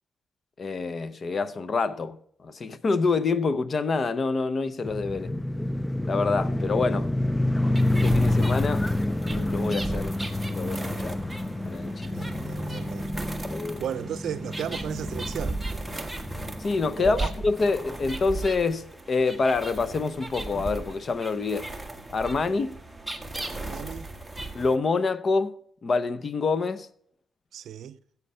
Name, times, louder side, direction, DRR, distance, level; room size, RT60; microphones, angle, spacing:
voice 1, 0.6-2.2 2.4-5.4 6.1-7.1 7.9-8.9 9.3-10.2 10.5-11.2 11.6-12.1 13.5-13.8 16.6-21.7 22.1-22.8 24.5-25.6 25.8-26.9, left 4 dB, 45° left, 0.8 m, -27 dB
sound 1, 4.8-18.2, left 1 dB, 10° left, 0.5 m, -28 dB
sound 2, 7.8-24.8, right 2 dB, 5° right, 1.4 m, -37 dB
voice 2, 12.1-13.1 13.8-15.6 17.0-17.3 23.5-24.1 27.5-28.0, right 9 dB, 80° right, 0.5 m, -35 dB
14.0 x 8.1 x 5.5 m
cardioid pair, 95°, 0 cm